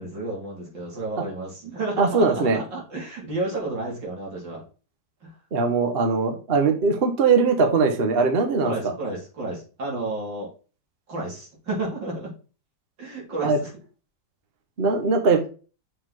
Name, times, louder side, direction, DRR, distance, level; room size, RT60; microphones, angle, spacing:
voice 1, 0.0-4.6 5.2-5.4 8.6-10.5 11.1-12.3 13.0-13.7, right 2 dB, 80° right, -3 dB, 3.7 m, -31 dB
voice 2, 2.0-2.6 5.5-8.9 13.4-13.6 14.8-15.5, right 4 dB, 40° right, 4 dB, 1.1 m, -21 dB
6.5 x 4.3 x 4.7 m, 0.36 s
omnidirectional pair, 1.9 m